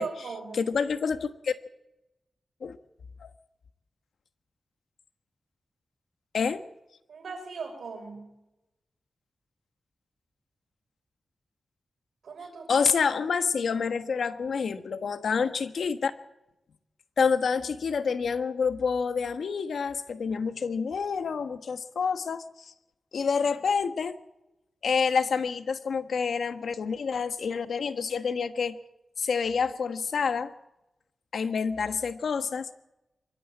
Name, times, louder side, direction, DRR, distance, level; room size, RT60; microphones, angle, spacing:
voice 1, 0.0-0.7 7.1-8.3 12.2-12.9, right 5 dB, 85° right, 4 dB, 6.1 m, -38 dB
voice 2, 0.5-1.5 2.6-2.8 3.2-3.3 6.3-6.6 12.7-16.1 17.2-22.4 23.1-24.2 24.8-28.8 29.2-30.5 31.3-32.7, left 5 dB, 80° left, 9 dB, 1.3 m, -28 dB
24.0 x 12.5 x 8.7 m, 0.91 s
cardioid pair, 80°, 0 cm